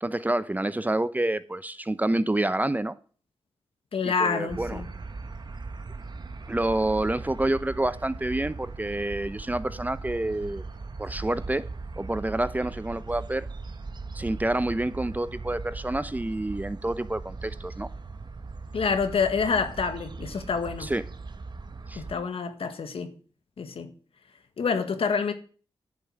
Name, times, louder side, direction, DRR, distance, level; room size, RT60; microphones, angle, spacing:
voice 1, 0.0-2.9 4.0-4.8 6.5-10.6 11.0-11.7 12.0-13.5 14.1-17.9 20.8-21.0 21.9-22.0, right 1 dB, 15° right, 0.7 m, -28 dB
voice 2, 3.9-4.9 18.7-20.9 22.0-23.1 23.6-23.9 24.6-25.3, left 5 dB, 70° left, 1.6 m, -27 dB
sound 1, 4.5-22.2, right 3 dB, 45° right, 1.1 m, -39 dB
11.0 x 5.5 x 8.7 m
cardioid pair, 55°, 10 cm